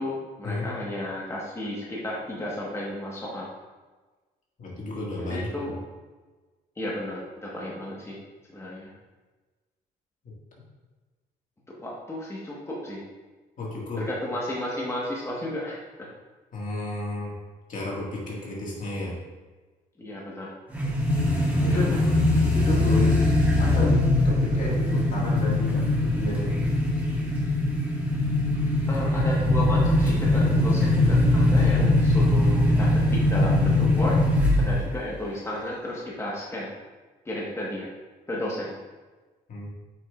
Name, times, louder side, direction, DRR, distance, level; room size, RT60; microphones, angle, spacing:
voice 1, 0.0-3.5 5.2-5.7 6.8-8.2 8.5-8.9 11.8-13.0 14.0-15.8 20.0-20.5 21.7-21.9 28.9-34.2 34.6-36.7 37.2-37.9 38.3-38.8, left 1 dB, 15° left, -5 dB, 1.5 m, -33 dB
voice 2, 4.6-5.8 10.2-10.3 13.6-14.1 16.5-17.4 17.7-19.2 21.6-22.1 22.5-23.3 23.6-26.6 39.5-39.7, left 2 dB, 55° left, -4 dB, 2.1 m, -32 dB
sound 1, 20.7-35.0, left 1 dB, 10° right, 1.9 m, -22 dB
8.8 x 5.4 x 2.6 m, 1.3 s
cardioid pair, 100°, 16 cm